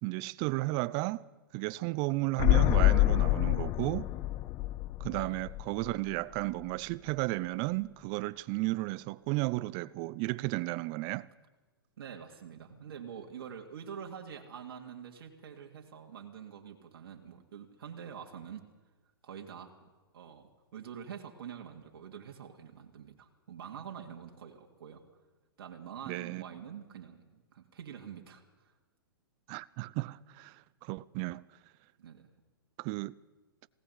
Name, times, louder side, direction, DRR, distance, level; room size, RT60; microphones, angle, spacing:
voice 1, 0.0-1.2 1.5-4.1 5.0-11.3 26.1-26.4 29.5-30.6 30.8-31.4 32.8-33.1, right 21 dB, 35° right, 0.6 m, -33 dB
sound 1, 2.4-6.1 6.4-6.5, left 17 dB, 25° left, 0.6 m, -27 dB
voice 2, 12.0-18.6 19.2-19.7 20.1-25.0 25.6-28.7 32.0-32.3, right 8 dB, 65° right, 2.7 m, -46 dB
19.0 x 18.0 x 8.3 m
hypercardioid pair, 130°, 13 cm